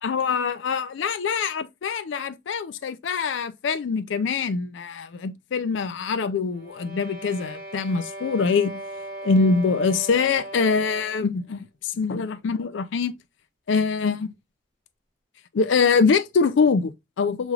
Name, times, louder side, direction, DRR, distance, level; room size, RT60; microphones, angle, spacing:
voice 1, 0.0-8.8 9.2-13.1 13.7-14.3 15.5-17.5, left 5 dB, 75° left, 0.4 m, -24 dB
sound 1, 6.5-11.3, right 1 dB, 20° right, 1.3 m, -38 dB
5.1 x 3.1 x 2.4 m
head